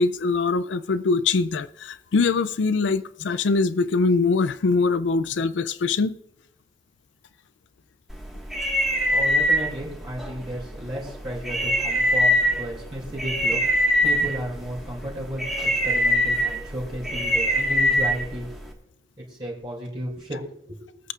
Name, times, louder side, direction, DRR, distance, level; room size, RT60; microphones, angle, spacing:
voice 1, 0.0-6.2, left 4 dB, 85° left, 0.4 m, -23 dB
sound 1, 8.1-18.7, equal, ahead, 1.6 m, -24 dB
voice 2, 9.1-18.5 19.2-20.8, equal, 25° right, 2.5 m, -34 dB
22.5 x 8.4 x 2.5 m
head